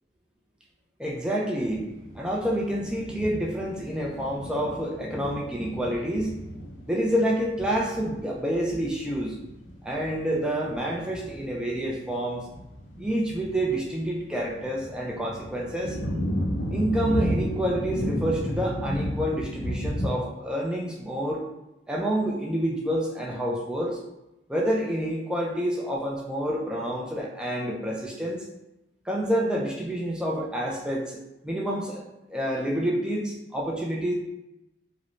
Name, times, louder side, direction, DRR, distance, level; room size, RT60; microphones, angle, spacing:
voice 1, 1.0-1.9 2.1-6.4 6.9-9.4 9.8-12.5 13.0-16.0 16.7-21.4 21.9-24.0 24.5-28.4 29.1-31.2 31.4-32.0 32.3-34.1, equal, 5° right, -3 dB, 0.3 m, -28 dB
sound 1, 1.6-20.1, equal, 80° left, 0.5 m, -34 dB
3.0 x 2.0 x 2.5 m, 0.93 s
head